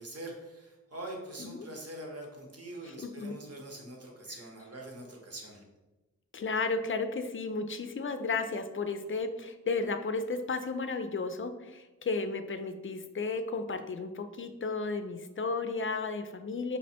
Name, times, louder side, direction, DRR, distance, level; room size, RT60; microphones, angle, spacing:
voice 1, 0.0-5.6, right 1 dB, 50° right, 0 dB, 1.0 m, -44 dB
voice 2, 2.9-3.3 6.3-16.8, left 4 dB, 45° left, 8 dB, 0.4 m, -33 dB
5.3 x 2.1 x 4.2 m, 1.1 s
wide cardioid pair, 105°, 30 cm